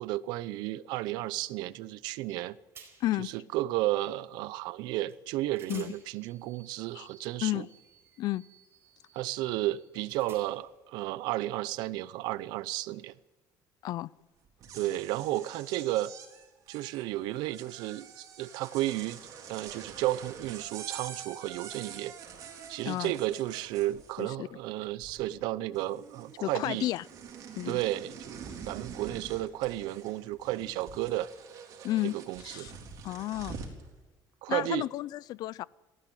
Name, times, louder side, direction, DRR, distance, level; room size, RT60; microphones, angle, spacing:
voice 1, 0.0-2.6 3.2-7.7 9.1-13.1 14.7-16.1 16.7-19.2 19.5-22.1 22.7-26.9 27.7-28.4 28.7-31.3 32.0-32.7 34.4-34.9, right 16 dB, 90° right, 0.7 m, -33 dB
sound 1, 2.3-2.4 2.7-3.3 5.1-5.2 5.5-10.8, right 6 dB, 35° right, 4.6 m, -56 dB
voice 2, 3.0-3.3 5.7-5.9 6.9-7.1 7.4-7.7 8.2-8.4 13.8-14.1 22.9-23.1 24.2-24.5 26.4-27.0 27.6-27.8 31.8-32.7 33.0-33.6 34.5-35.7, left 15 dB, 65° left, 0.5 m, -32 dB
sound 2, 14.5-24.5 24.8-25.5 25.7-33.8, right 7 dB, 55° right, 4.0 m, -46 dB
18.5 x 15.5 x 9.2 m
cardioid pair, 135°, 7 cm